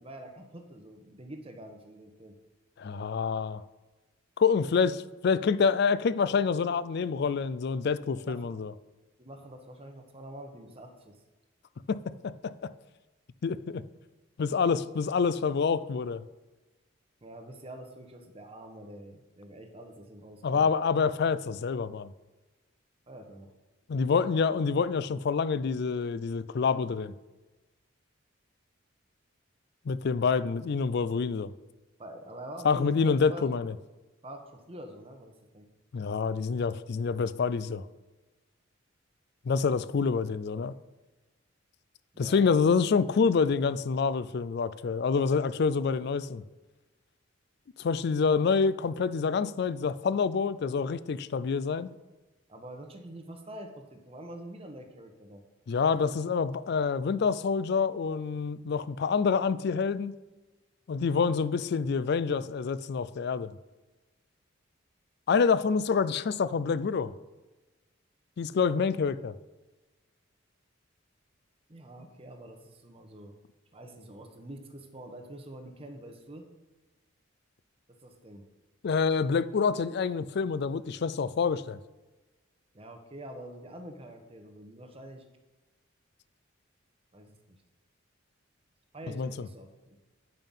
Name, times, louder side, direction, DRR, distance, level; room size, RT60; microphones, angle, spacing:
voice 1, 0.0-2.3 7.8-8.6 9.2-11.2 17.2-20.7 23.1-23.5 32.0-33.5 34.2-35.7 42.1-42.4 52.5-55.4 71.7-73.3 73.7-76.5 77.9-78.4 82.7-85.2 87.1-87.6 88.9-90.0, right 1 dB, 30° right, 1.0 m, -46 dB
voice 2, 2.8-3.6 4.4-8.7 11.9-12.7 13.4-13.8 14.4-16.2 20.4-22.1 23.9-27.1 29.9-31.5 32.6-33.7 35.9-37.8 39.5-40.7 42.2-46.4 47.8-51.9 55.7-60.1 60.9-63.5 65.3-67.1 68.4-69.3 78.8-81.8 89.2-89.3, left 5 dB, 55° left, 0.4 m, -27 dB
9.0 x 5.5 x 5.5 m
head